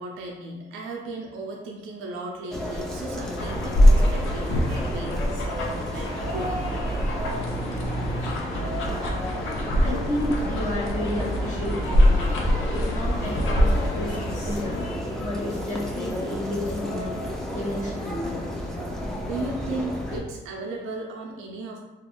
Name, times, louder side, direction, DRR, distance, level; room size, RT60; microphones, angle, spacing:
voice 1, 0.0-5.2 5.9-6.6 19.2-21.8, right 2 dB, 85° right, 0 dB, 0.4 m, -35 dB
sound 1, 2.5-20.2, equal, 5° left, 0.4 m, -33 dB
sound 2, 3.4-15.0, equal, 80° left, 0.5 m, -24 dB
sound 3, 4.6-7.9 8.5-9.5 9.7-11.3 13.3-15.5 16.4-17.9 18.2-18.6 19.7-19.8, left 1 dB, 65° left, 1.0 m, -39 dB
voice 2, 9.7-12.2 12.7-14.8 15.2-17.2 17.5-18.5, left 1 dB, 40° left, -5 dB, 0.7 m, -31 dB
2.3 x 2.3 x 3.0 m, 1.1 s
cardioid pair, 90°, 20 cm